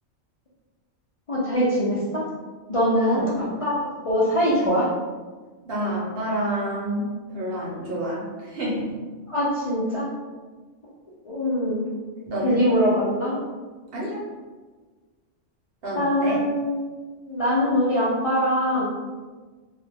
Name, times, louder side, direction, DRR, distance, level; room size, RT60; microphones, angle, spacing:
voice 1, 1.3-2.2 2.7-4.9 9.3-10.1 11.2-11.8 12.4-13.4 15.9-16.8 17.3-18.9, equal, 55° left, -8 dB, 0.4 m, -23 dB
voice 2, 2.9-3.4 5.6-8.9 12.3-12.6 13.9-14.2 15.8-16.4, right 1 dB, 55° right, -5 dB, 0.8 m, -28 dB
2.3 x 2.1 x 3.3 m, 1.4 s
omnidirectional pair, 1.3 m